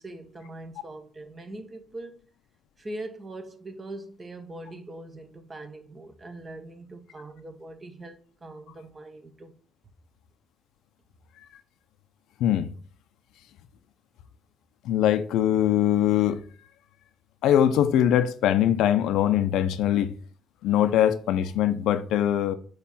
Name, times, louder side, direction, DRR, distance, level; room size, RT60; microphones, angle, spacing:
voice 1, 0.0-2.2 2.8-9.5, right 2 dB, 30° right, 1.5 m, -41 dB
voice 2, 12.4-12.7 14.8-16.4 17.4-20.1 20.6-22.5, left 11 dB, 90° left, 0.7 m, -22 dB
8.5 x 3.2 x 5.8 m
cardioid pair, 90°, 0 cm